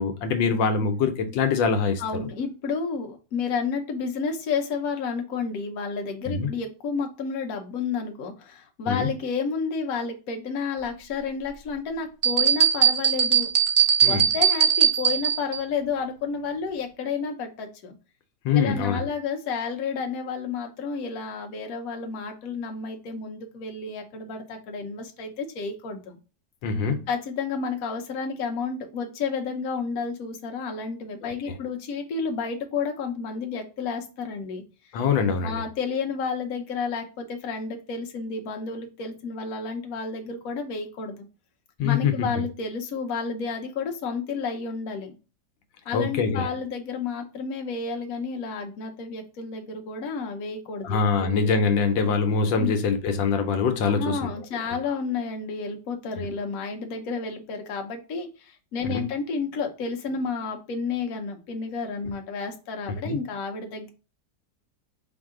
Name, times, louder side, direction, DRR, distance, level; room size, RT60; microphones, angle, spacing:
voice 1, 0.0-2.0 6.3-6.5 8.9-9.1 14.0-14.2 18.4-19.1 26.6-27.0 31.2-31.5 34.9-35.6 41.8-42.3 45.9-46.5 50.8-54.3 54.7-54.8 56.2-56.3 58.8-59.0 63.0-63.2, left 5 dB, 80° left, 1.4 m, -24 dB
voice 2, 2.0-13.5 14.0-17.9 18.5-26.1 27.1-34.6 35.4-41.2 41.8-45.1 45.8-51.3 52.6-52.8 53.9-63.9, left 5 dB, 60° left, 1.1 m, -31 dB
sound 1, 12.2-15.6, right 8 dB, 70° right, 0.5 m, -20 dB
4.6 x 2.7 x 3.6 m
omnidirectional pair, 2.1 m